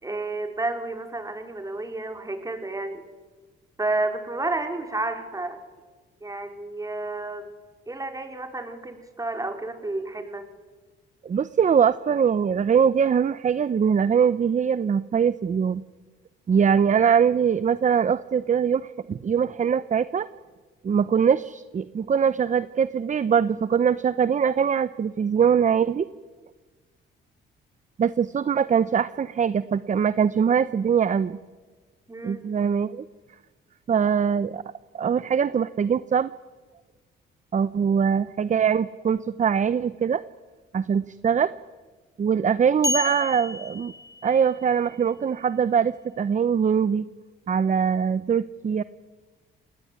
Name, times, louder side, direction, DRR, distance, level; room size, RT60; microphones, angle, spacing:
voice 1, 0.0-3.1 3.8-5.6 6.2-7.6 7.9-10.4 32.1-32.4, right 2 dB, 15° right, 6 dB, 4.6 m, -31 dB
voice 2, 11.2-15.8 16.5-20.3 20.8-26.1 28.0-31.4 32.2-33.0 33.9-34.6 34.9-36.3 37.5-40.2 40.7-41.5 42.2-43.9 44.2-47.1 47.5-48.8, right 7 dB, 40° right, 15 dB, 0.9 m, -22 dB
sound 1, 42.8-44.7, left 2 dB, 15° left, 3.8 m, -30 dB
27.5 x 19.5 x 9.7 m, 1.3 s
cardioid pair, 90°, 20 cm